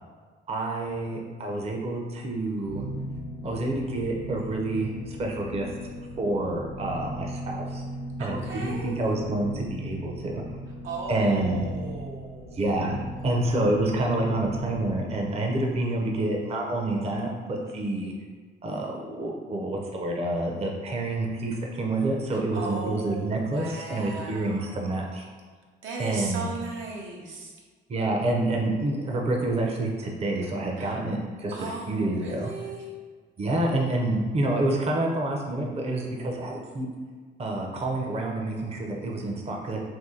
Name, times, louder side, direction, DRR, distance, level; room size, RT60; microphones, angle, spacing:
voice 1, 0.5-2.8 3.4-5.8 6.2-7.8 8.2-10.4 11.1-11.7 12.5-13.0 13.2-18.1 18.6-25.2 26.0-26.4 27.9-32.5 33.4-36.9 37.4-39.9, right 2 dB, 30° right, 0 dB, 0.6 m, -28 dB
sound 1, 2.7-15.2, equal, 70° left, 0.8 m, -38 dB
voice 2, 8.2-9.0 10.8-12.6 22.3-25.2 25.8-27.5 30.8-31.0 31.5-32.8, right 3 dB, 80° right, -2 dB, 0.7 m, -37 dB
2.7 x 2.6 x 3.7 m, 1.5 s
cardioid pair, 90°, 20 cm